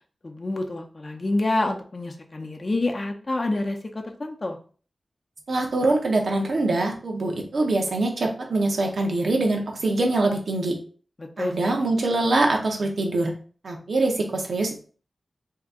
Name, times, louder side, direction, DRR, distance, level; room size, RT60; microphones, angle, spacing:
voice 1, 0.2-4.6 11.2-11.7, left 2 dB, 45° left, 3 dB, 0.6 m, -28 dB
voice 2, 5.5-10.8 11.4-13.3 13.6-14.8, right 2 dB, 75° right, 2 dB, 0.8 m, -24 dB
2.8 x 2.5 x 3.6 m, 0.41 s
cardioid pair, 55°, 0 cm